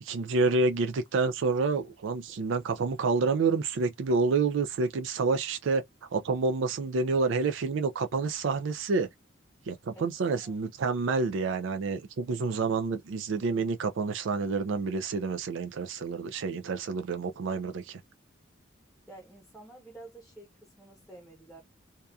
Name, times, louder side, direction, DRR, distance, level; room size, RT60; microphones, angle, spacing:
voice 1, 0.0-5.8 6.1-9.1 9.7-18.0, right 4 dB, 75° right, 0.4 m, -28 dB
voice 2, 9.9-10.5 19.1-21.6, right 2 dB, ahead, 0.7 m, -50 dB
2.8 x 2.3 x 2.2 m
head